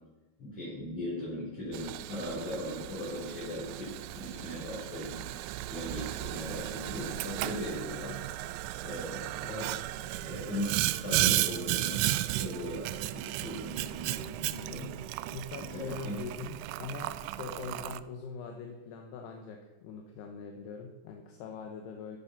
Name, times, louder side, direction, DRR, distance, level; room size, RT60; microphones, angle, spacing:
voice 1, 0.4-5.2 5.7-8.2 8.8-9.7 10.2-14.9 15.6-16.2, left 1 dB, 45° left, -8 dB, 5.9 m, -39 dB
Boiling, 1.7-18.0, right 16 dB, 90° right, 2.9 m, -34 dB
voice 2, 15.3-22.2, left 4 dB, 75° left, 3 dB, 3.0 m, -42 dB
13.0 x 11.0 x 5.9 m, 1.1 s
omnidirectional pair, 5.1 m